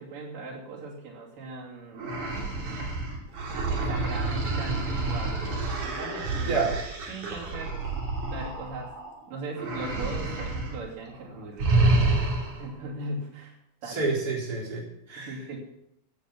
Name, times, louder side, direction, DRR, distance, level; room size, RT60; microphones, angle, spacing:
voice 1, 0.0-2.0 3.5-5.4 5.8-6.8 7.1-7.8 8.3-8.9 9.3-11.9 12.6-13.6 13.8-14.0 15.2-15.6, right 2 dB, 85° right, -2 dB, 4.5 m, -39 dB
sound 1, 2.0-9.1 9.5-10.8 11.1-11.2 11.6-12.7, right 2 dB, 65° right, 4.3 m, -28 dB
voice 2, 6.4-6.7 13.9-15.4, right 4 dB, 30° right, -3 dB, 4.1 m, -29 dB
16.5 x 7.7 x 7.4 m, 0.81 s
omnidirectional pair, 3.7 m